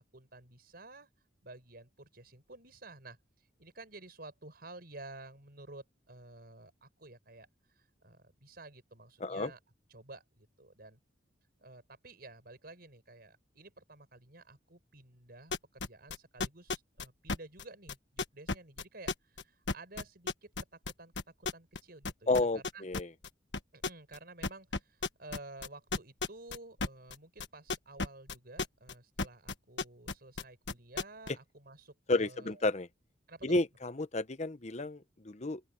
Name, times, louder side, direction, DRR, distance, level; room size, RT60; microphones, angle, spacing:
voice 1, 0.1-1.1 1.4-3.2 3.6-9.6 9.9-11.0 11.6-21.1 21.4-22.8 23.7-32.6 33.3-33.6, right 2 dB, 55° right, 5.8 m, -52 dB
voice 2, 9.2-9.5 22.3-23.1 32.1-32.9 33.4-35.6, left 2 dB, 35° left, 1.0 m, -31 dB
sound 1, 15.5-21.8 22.0-23.3 23.5-24.2 24.4-28.9 29.2-31.3, left 3 dB, 65° left, 1.4 m, -34 dB
open air
head